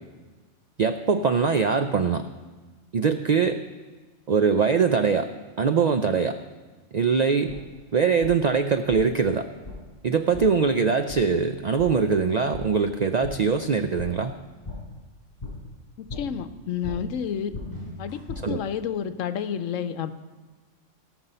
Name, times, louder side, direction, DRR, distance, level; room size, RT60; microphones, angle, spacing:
voice 1, 0.8-2.2 2.9-3.6 4.3-5.3 5.6-6.3 6.9-7.6 7.9-9.5 10.0-14.4 18.4-18.6, right 5 dB, 75° right, 8 dB, 0.4 m, -22 dB
sound 1, 7.5-7.6 8.2-8.3 8.9-9.0 9.6-9.8 10.3-10.5 11.1-11.2 11.8-11.9 12.5-12.6 13.2-13.3 14.0-14.1 14.6-14.8 15.4-15.5 16.1-16.2 16.8-17.0 17.5-18.4, left 3 dB, 35° left, 4.4 m, -36 dB
voice 2, 16.0-17.5 18.0-20.1, left 8 dB, 85° left, 11 dB, 1.0 m, -30 dB
17.5 x 6.2 x 5.5 m, 1.3 s
omnidirectional pair, 1.3 m